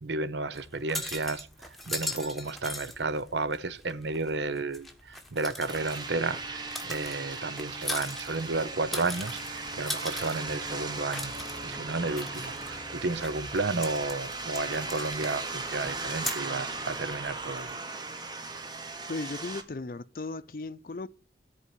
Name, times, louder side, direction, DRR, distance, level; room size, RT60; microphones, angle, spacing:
voice 1, 0.0-11.3 11.6-17.8, right 3 dB, 85° right, 0.7 m, -32 dB
sound 1, 0.5-17.8, left 1 dB, ahead, 1.2 m, -41 dB
sound 2, 5.7-19.6, right 3 dB, 25° right, 1.1 m, -37 dB
voice 2, 19.1-21.1, left 3 dB, 50° left, 0.5 m, -36 dB
13.5 x 4.6 x 8.3 m
head